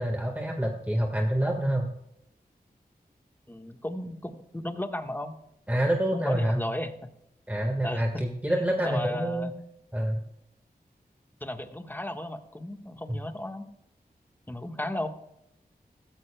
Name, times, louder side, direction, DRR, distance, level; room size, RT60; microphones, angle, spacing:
voice 1, 0.0-1.9 5.7-6.6 7.5-9.5 9.9-10.2 13.1-13.2, right 1 dB, 10° right, 1 dB, 1.6 m, -27 dB
voice 2, 3.5-5.3 6.1-7.1 7.8-8.2 8.8-9.5 11.4-13.7 14.5-15.1, left 1 dB, 10° left, 6 dB, 1.4 m, -34 dB
15.0 x 14.0 x 2.3 m, 0.80 s
cardioid pair, 50°, 16 cm